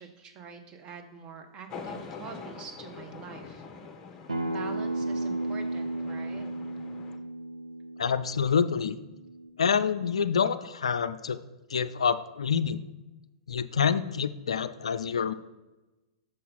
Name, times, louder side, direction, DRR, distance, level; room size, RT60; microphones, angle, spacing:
voice 1, 0.0-3.6 4.4-6.5, right 6 dB, 30° right, 5 dB, 0.9 m, -45 dB
sound 1, 1.7-7.2, left 4 dB, 25° left, 0.8 m, -44 dB
Acoustic guitar, 4.3-9.5, right 2 dB, 80° right, 0.6 m, -34 dB
voice 2, 8.0-9.0 9.6-11.4 11.7-12.8 13.5-15.3, left 6 dB, 70° left, 12 dB, 0.3 m, -27 dB
6.6 x 5.4 x 4.2 m, 1.1 s
figure-of-eight pair, 105°, 3 cm